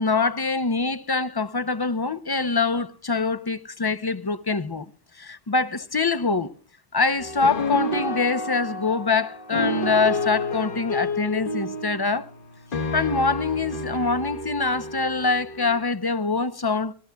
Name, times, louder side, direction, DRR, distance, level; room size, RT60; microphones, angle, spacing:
voice 1, 0.0-4.9 5.2-6.5 6.9-12.3 12.9-16.9, left 4 dB, 25° left, 0.5 m, -24 dB
sound 1, 7.2-15.8, left 2 dB, 50° left, 1.2 m, -30 dB
25.5 x 18.5 x 2.3 m
omnidirectional pair, 1.2 m